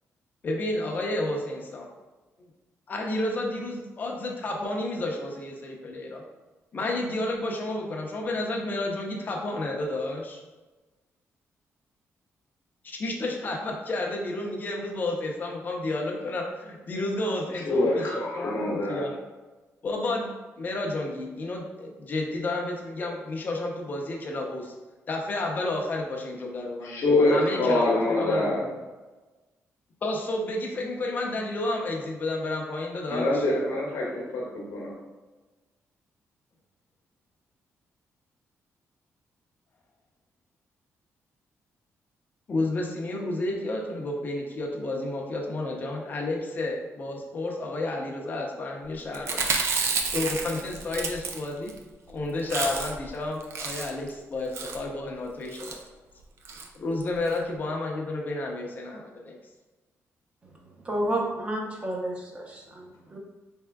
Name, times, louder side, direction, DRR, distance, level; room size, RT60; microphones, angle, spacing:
voice 1, 0.4-1.9 2.9-6.2 6.7-10.4 12.8-18.0 18.4-19.1 19.8-24.7 25.1-27.8 28.2-28.7 30.0-33.3 42.5-49.5 50.1-51.7 52.1-55.8 56.7-59.4, left 2 dB, 35° left, 0 dB, 0.6 m, -31 dB
voice 2, 17.5-19.1 26.8-28.7 33.1-34.9, left 2 dB, 70° left, -3 dB, 0.9 m, -25 dB
Chewing mastication, 49.1-51.8 52.1-52.2 52.4-53.1 53.4-54.1 54.5-54.8 55.5-55.8 56.4-56.7 57.0-57.1 57.3-57.4, right 4 dB, 55° right, 0.4 m, -30 dB
voice 3, 60.8-63.2, right 1 dB, 25° right, -1 dB, 0.7 m, -31 dB
4.1 x 3.5 x 2.3 m, 1.2 s
cardioid pair, 150°, 5 cm